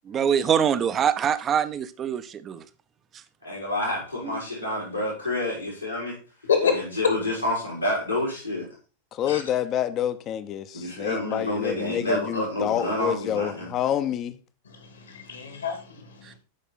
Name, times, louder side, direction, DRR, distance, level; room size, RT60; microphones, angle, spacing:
voice 1, 0.1-2.6 16.3-16.4, right 8 dB, 25° right, 0.8 m, -24 dB
voice 2, 3.4-6.2 6.6-8.6 10.7-13.7, left 1 dB, 90° left, 4.7 m, -29 dB
voice 3, 9.1-14.4, left 10 dB, 35° left, 0.9 m, -28 dB
voice 4, 14.7-16.3, left 6 dB, 70° left, 2.7 m, -27 dB
13.0 x 5.5 x 4.1 m
figure-of-eight pair, 90°, 0 cm